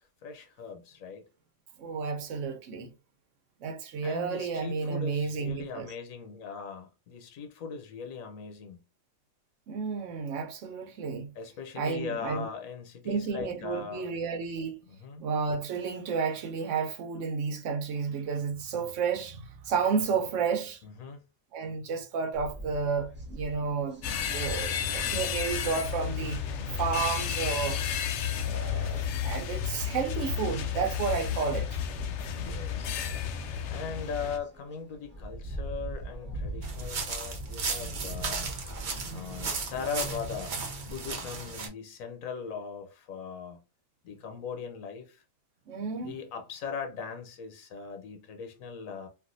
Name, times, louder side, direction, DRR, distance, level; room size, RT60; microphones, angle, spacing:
voice 1, 0.2-1.2 4.0-8.8 11.4-14.1 14.9-15.3 20.8-21.2 32.3-33.0 33.7-38.5 39.1-40.5 40.9-43.6 44.0-45.2 46.0-49.1, left 6 dB, 85° left, 1.1 m, -39 dB
voice 2, 1.8-2.9 3.6-5.9 9.7-11.3 11.8-12.5 13.0-14.8 15.2-20.8 21.5-26.4 26.7-27.9 28.4-31.8 45.7-46.2, right 5 dB, 70° right, 1.0 m, -31 dB
sound 1, 22.3-41.1, right 1 dB, 10° right, 0.9 m, -45 dB
sound 2, 24.0-34.4, left 8 dB, 70° left, 0.8 m, -32 dB
sound 3, 36.6-41.7, right 4 dB, 45° right, 0.7 m, -35 dB
3.3 x 2.5 x 2.5 m
omnidirectional pair, 1.4 m